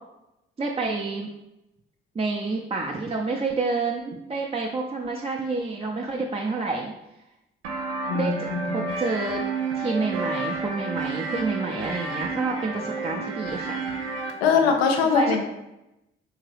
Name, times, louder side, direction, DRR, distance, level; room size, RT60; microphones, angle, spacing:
voice 1, 0.6-1.3 2.1-6.9 8.1-8.3 8.7-9.4 9.7-13.8 15.1-15.4, right 3 dB, 20° right, -1 dB, 0.5 m, -28 dB
sound 1, 7.6-14.3, right 3 dB, 90° right, 0.5 m, -30 dB
voice 2, 8.1-8.9 14.4-15.4, left 5 dB, 85° left, 3 dB, 0.5 m, -22 dB
3.7 x 2.8 x 3.2 m, 0.91 s
hypercardioid pair, 40°, 29 cm